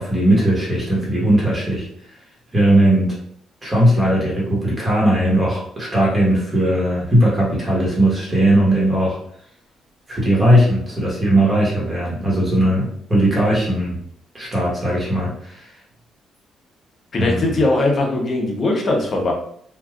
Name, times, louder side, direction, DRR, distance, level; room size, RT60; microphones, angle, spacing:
voice 1, 0.0-1.9 2.5-3.1 3.6-9.2 10.1-14.0 14.3-15.7 17.2-17.6, right 1 dB, 25° right, -5 dB, 1.3 m, -18 dB
voice 2, 17.1-19.3, left 2 dB, 45° left, 0 dB, 0.9 m, -20 dB
3.2 x 2.5 x 2.4 m, 0.65 s
cardioid pair, 90°, 0 cm